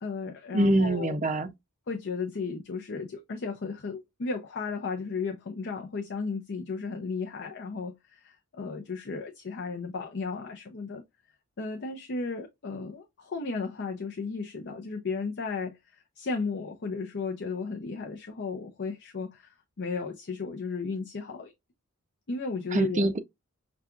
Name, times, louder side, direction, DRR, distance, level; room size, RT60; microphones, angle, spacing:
voice 1, 0.0-1.2 1.9-11.0 11.6-21.5 22.3-23.1, left 4 dB, 50° left, 0.6 m, -34 dB
voice 2, 0.5-1.5 22.7-23.2, right 1 dB, 35° right, 0.5 m, -24 dB
5.7 x 2.4 x 2.4 m
head